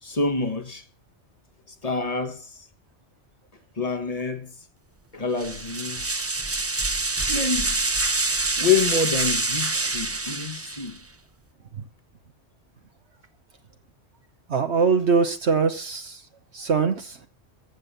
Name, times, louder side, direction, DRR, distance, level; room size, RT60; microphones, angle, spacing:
voice 1, 0.0-0.9 1.7-2.7 3.8-4.7 5.1-6.2 7.3-7.8 8.6-11.0, left 4 dB, 30° left, 1.4 m, -27 dB
sound 1, 5.4-11.0, right 2 dB, 20° right, 0.4 m, -26 dB
voice 2, 14.5-16.2 16.5-17.2, right 5 dB, 65° right, 1.3 m, -22 dB
15.0 x 7.6 x 6.7 m
omnidirectional pair, 1.2 m